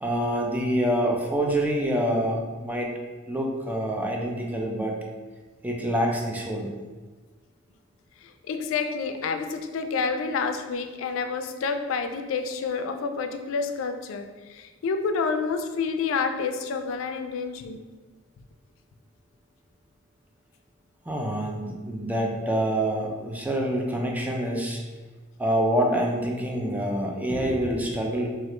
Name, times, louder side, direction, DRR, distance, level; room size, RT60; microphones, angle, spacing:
voice 1, 0.0-2.9 3.3-5.0 5.6-6.7 21.1-24.8 25.4-28.3, right 1 dB, 10° right, 0 dB, 0.4 m, -26 dB
voice 2, 8.2-17.9, left 5 dB, 85° left, 7 dB, 0.3 m, -29 dB
3.1 x 2.4 x 2.9 m, 1.3 s
head